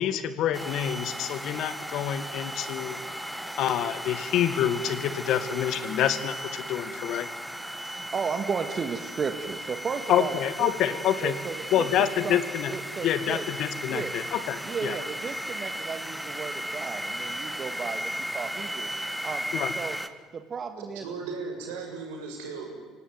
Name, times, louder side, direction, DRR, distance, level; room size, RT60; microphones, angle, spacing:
voice 1, 0.0-3.0 3.6-7.3 10.1-11.3 11.7-12.7 13.0-15.0 19.5-19.7, left 10 dB, 60° left, 12 dB, 1.8 m, -27 dB
sound 1, 0.5-20.1, equal, 5° right, 1.7 m, -36 dB
voice 2, 7.8-12.4 12.7-13.5 13.9-14.2 14.6-18.9 19.2-20.0 20.3-21.1, right 6 dB, 40° right, 7 dB, 1.8 m, -34 dB
voice 3, 20.8-22.7, right 4 dB, 80° right, 1 dB, 6.7 m, -36 dB
25.5 x 17.5 x 9.5 m, 1.4 s
hypercardioid pair, 65°, 0 cm